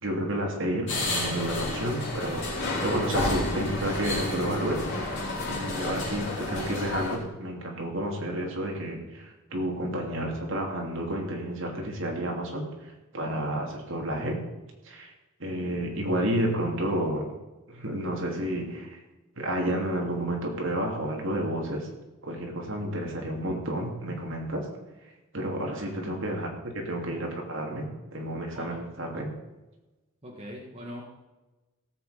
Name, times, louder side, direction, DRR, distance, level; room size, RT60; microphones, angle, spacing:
voice 1, 0.0-5.2 5.5-14.4 14.8-15.1 15.4-17.3 17.7-19.0 19.4-21.9 22.2-24.7 25.3-29.4, right 1 dB, 65° right, 1 dB, 2.9 m, -31 dB
sound 1, 0.9-7.2, left 2 dB, 60° left, 4.8 m, -30 dB
voice 2, 25.6-26.2 28.5-28.8 30.2-31.0, equal, 30° right, -1 dB, 1.8 m, -42 dB
17.0 x 8.1 x 5.1 m, 1.1 s
head